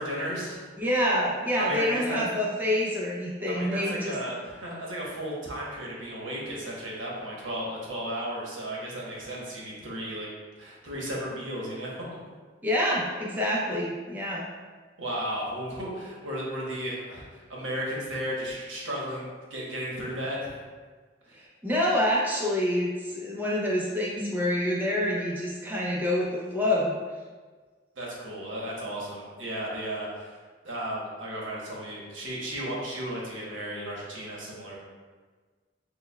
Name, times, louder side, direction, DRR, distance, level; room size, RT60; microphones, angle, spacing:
voice 1, 0.0-0.6 1.5-2.2 3.5-10.3 10.6-12.2 15.0-20.6 21.3-21.4 27.9-30.4 30.6-34.8, equal, 85° right, -4 dB, 1.0 m, -34 dB
voice 2, 0.8-4.2 12.6-14.5 21.3-27.0, left 1 dB, 10° right, -4 dB, 0.5 m, -27 dB
6.4 x 2.2 x 2.2 m, 1.4 s
head